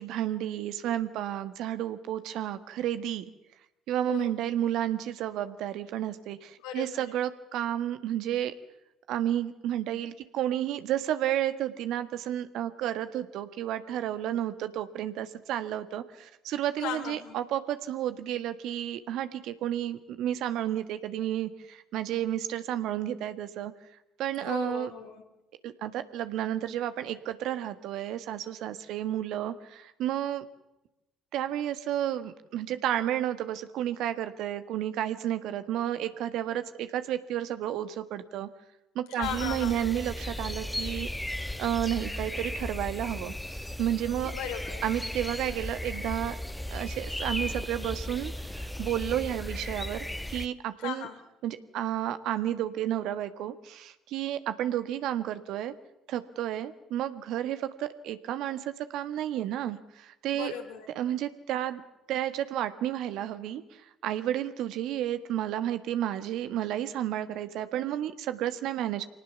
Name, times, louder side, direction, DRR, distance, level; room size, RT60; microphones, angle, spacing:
voice 1, 0.0-3.2 3.9-8.5 9.1-23.7 24.2-24.9 25.6-30.4 31.3-38.5 38.9-41.1 41.6-44.3 44.8-46.4 46.7-51.1 51.4-55.7 56.1-60.5 60.9-61.8 62.1-63.6 64.0-69.1, right 11 dB, 65° right, 11 dB, 1.5 m, -31 dB
voice 2, 6.6-7.1 16.8-17.4 24.5-25.2 39.1-39.9 44.2-44.9 50.8-51.2 60.3-60.9, left 9 dB, 75° left, 5 dB, 3.5 m, -37 dB
sound 1, 39.2-50.5, left 1 dB, 5° left, 1.0 m, -36 dB
25.5 x 18.5 x 7.0 m, 0.92 s
hypercardioid pair, 55°, 0 cm